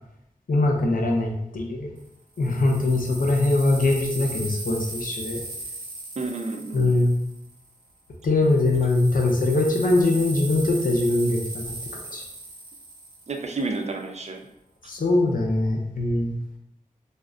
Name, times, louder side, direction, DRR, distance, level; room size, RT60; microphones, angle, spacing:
voice 1, 0.5-1.9 2.4-5.4 6.7-7.2 8.2-11.7 12.1-12.2 14.9-16.3, left 2 dB, 70° left, 0 dB, 0.6 m, -22 dB
sound 1, 2.0-7.9 8.4-13.8, right 2 dB, 85° right, 0.8 m, -38 dB
voice 2, 6.2-6.9 13.3-14.5, right 3 dB, 50° right, 3 dB, 0.4 m, -30 dB
2.3 x 2.1 x 3.6 m, 0.79 s
wide cardioid pair, 85°, 15 cm